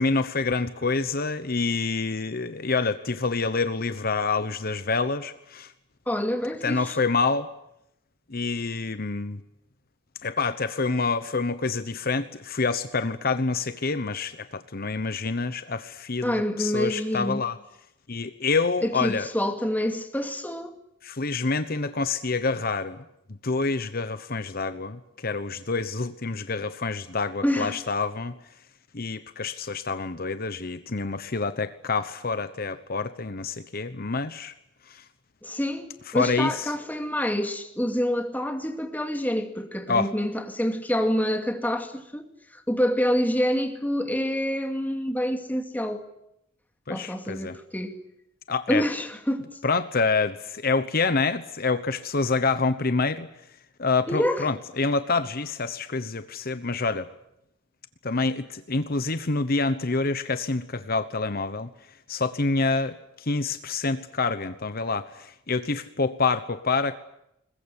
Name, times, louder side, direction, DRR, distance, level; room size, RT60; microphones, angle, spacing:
voice 1, 0.0-5.7 6.6-7.5 8.3-9.4 10.2-17.6 18.1-19.3 21.0-23.0 23.4-28.4 28.9-34.5 34.9-35.0 36.1-36.7 39.9-40.1 46.9-47.6 48.5-48.8 49.6-53.3 53.8-57.1 58.0-61.7 62.1-67.0, left 4 dB, 50° left, 1.0 m, -27 dB
voice 2, 6.1-7.0 16.2-17.5 18.8-20.8 27.4-27.8 35.4-46.0 46.9-48.0 48.7-49.5 54.1-54.5, equal, 10° left, 2.3 m, -27 dB
21.5 x 21.5 x 9.9 m
head